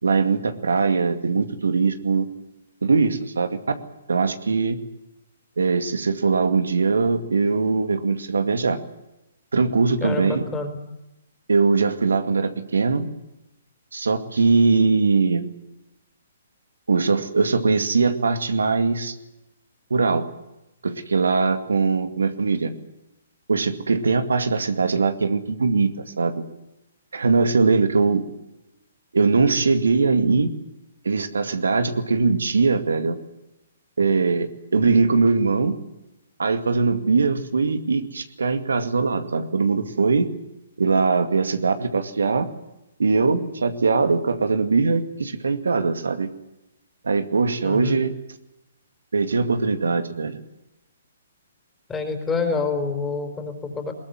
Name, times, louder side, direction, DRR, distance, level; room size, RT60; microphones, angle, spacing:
voice 1, 0.0-2.3 2.8-3.6 4.1-4.8 5.6-8.8 9.5-10.4 11.5-13.1 13.9-15.5 16.9-19.1 19.9-20.3 20.8-22.7 23.5-26.4 27.1-28.2 29.1-30.5 31.0-33.2 34.0-35.8 36.4-40.3 40.8-42.5 43.0-46.3 47.0-48.1 49.1-50.4, right 4 dB, 80° right, 9 dB, 2.2 m, -21 dB
voice 2, 10.0-10.8 47.6-48.0 51.9-53.9, left 4 dB, 15° left, 5 dB, 4.5 m, -27 dB
21.5 x 19.0 x 9.5 m, 0.92 s
hypercardioid pair, 135°, 0 cm